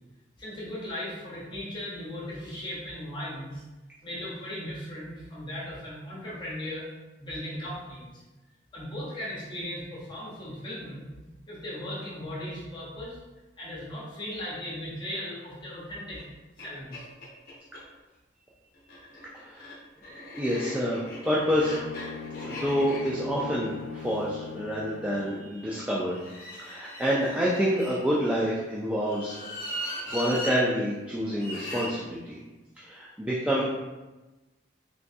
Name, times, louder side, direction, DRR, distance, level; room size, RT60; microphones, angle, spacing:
voice 1, 0.4-3.6 4.0-6.9 7.2-8.2 8.7-11.1 11.5-13.2 13.6-16.2 16.6-17.0, left 1 dB, 25° left, -8 dB, 1.0 m, -37 dB
sound 1, 16.2-16.3 16.6-16.7 16.9-17.8 18.8-24.9 26.1-28.4 29.0-30.6 31.4-31.9, left 1 dB, 50° left, 0.7 m, -39 dB
voice 2, 20.4-21.8 22.4-26.2 26.5-29.5 30.1-32.4 32.8-33.6, equal, 5° right, -7 dB, 0.3 m, -28 dB
Bowed string instrument, 21.5-25.6, left 6 dB, 80° left, 0.3 m, -41 dB
3.5 x 3.0 x 2.7 m, 1.1 s
head